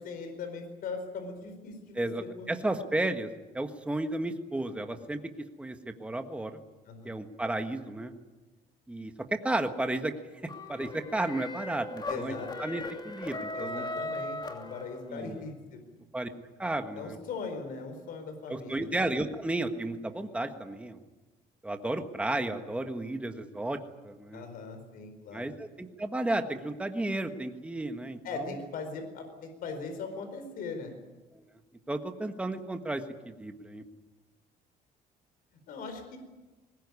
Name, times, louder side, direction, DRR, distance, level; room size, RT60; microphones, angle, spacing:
voice 1, 0.0-2.1 2.4-2.5 6.9-7.2 12.1-12.5 13.5-15.8 16.9-18.9 24.3-25.5 28.2-31.0 35.7-36.2, left 4 dB, 65° left, 6 dB, 4.6 m, -39 dB
voice 2, 1.9-3.3 3.5-5.2 5.6-6.6 7.0-8.1 8.9-9.1 9.4-10.1 10.7-13.8 15.1-15.4 16.1-16.3 16.6-17.2 18.5-21.0 21.6-23.8 24.0-24.4 25.3-28.2 31.3-31.4 31.9-33.8, right 2 dB, 5° right, 6 dB, 1.5 m, -33 dB
sound 1, 10.5-15.3, left 2 dB, 25° left, 2.7 m, -38 dB
21.5 x 20.0 x 9.8 m, 1.1 s
cardioid pair, 140°, 16 cm